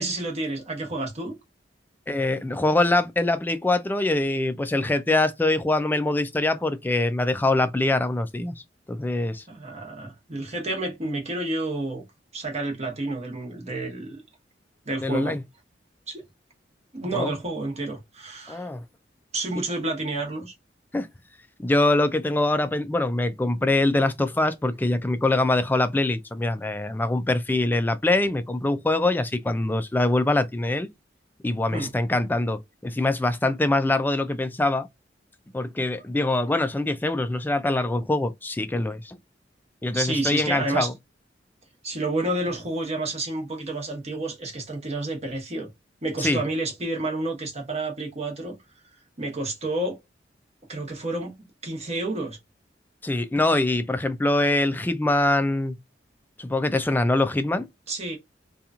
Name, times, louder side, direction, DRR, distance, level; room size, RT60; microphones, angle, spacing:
voice 1, 0.0-1.4 9.5-12.0 12.3-14.2 14.9-15.4 16.1-16.2 16.9-18.7 19.3-20.5 31.7-31.9 39.9-40.9 41.8-45.7 46.0-48.5 49.2-50.0 50.7-51.3 51.6-52.4 57.9-58.2, right 2 dB, 40° right, 1.0 m, -30 dB
voice 2, 2.1-8.6 8.9-9.4 15.0-15.4 17.1-17.4 18.5-18.8 19.5-19.6 20.9-21.1 21.6-30.9 31.4-34.9 35.5-39.2 39.8-40.9 46.2-46.4 53.0-55.8 56.4-57.7, left 2 dB, 10° left, 0.3 m, -24 dB
2.9 x 2.3 x 2.4 m
head